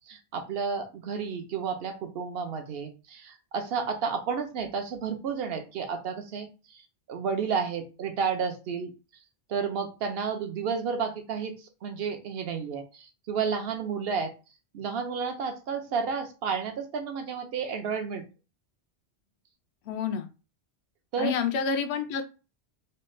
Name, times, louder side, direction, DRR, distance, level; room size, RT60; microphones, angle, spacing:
voice 1, 0.1-6.8 7.1-8.9 9.5-14.3 14.7-18.2 21.1-21.3, right 6 dB, 65° right, 6 dB, 0.8 m, -31 dB
voice 2, 19.9-20.3 21.2-22.2, left 6 dB, 75° left, 7 dB, 0.8 m, -28 dB
3.2 x 2.1 x 3.1 m, 0.31 s
omnidirectional pair, 1.1 m